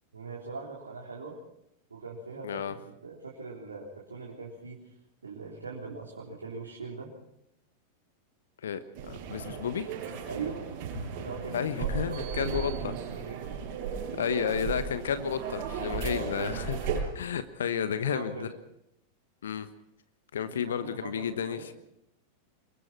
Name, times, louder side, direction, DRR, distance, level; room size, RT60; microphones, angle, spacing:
voice 1, 0.1-1.4 1.9-4.9 5.2-7.1 10.3-10.7 11.2-13.5 16.0-16.3 17.8-18.5 20.4-21.7, right 4 dB, 75° right, -3 dB, 3.7 m, -41 dB
voice 2, 2.4-2.7 8.6-9.9 11.5-12.9 14.2-18.5 19.4-19.7 20.3-21.7, left 8 dB, 65° left, 12 dB, 1.1 m, -32 dB
sound 1, 8.9-17.0, right 6 dB, 45° right, 7.2 m, -35 dB
26.0 x 22.5 x 4.4 m, 0.79 s
figure-of-eight pair, 90°, 0 cm